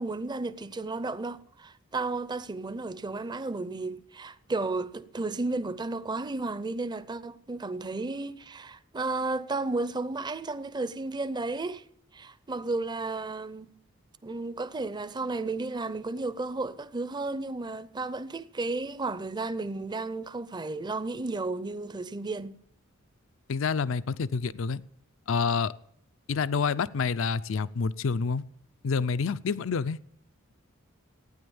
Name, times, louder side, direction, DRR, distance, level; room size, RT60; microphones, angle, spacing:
voice 1, 0.0-11.8 12.1-13.7 14.2-22.6, right 3 dB, 20° right, 0.6 m, -33 dB
voice 2, 23.5-24.8 25.3-25.7 26.3-28.4 28.8-30.0, left 5 dB, 70° left, 0.5 m, -28 dB
15.5 x 9.7 x 7.1 m
head